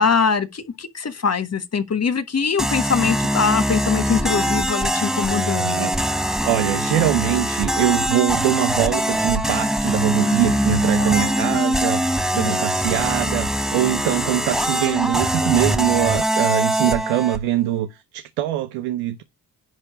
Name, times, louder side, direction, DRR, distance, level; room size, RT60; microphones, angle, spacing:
voice 1, 0.0-5.9 10.2-11.6 12.3-12.6, left 6 dB, 35° left, 1.5 m, -23 dB
sound 1, 2.6-17.4, right 1 dB, ahead, 1.1 m, -22 dB
voice 2, 5.5-5.9 6.2-12.0 12.3-19.2, right 13 dB, 85° right, 0.8 m, -23 dB
10.5 x 4.5 x 5.0 m
supercardioid pair, 60°, 45 cm